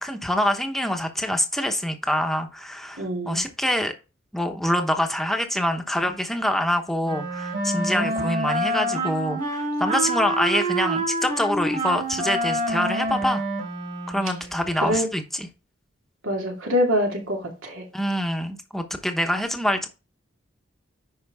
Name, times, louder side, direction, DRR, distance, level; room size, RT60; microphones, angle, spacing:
voice 1, 0.0-3.9 4.3-13.4 14.1-15.5 17.9-19.9, equal, ahead, 1.0 m, -25 dB
voice 2, 3.0-3.4 7.9-8.2 14.8-15.1 16.2-17.8, equal, 80° right, 2.6 m, -25 dB
Wind instrument woodwind instrument, 7.0-14.6, right 1 dB, 40° right, 2.6 m, -27 dB
10.5 x 5.0 x 3.5 m
head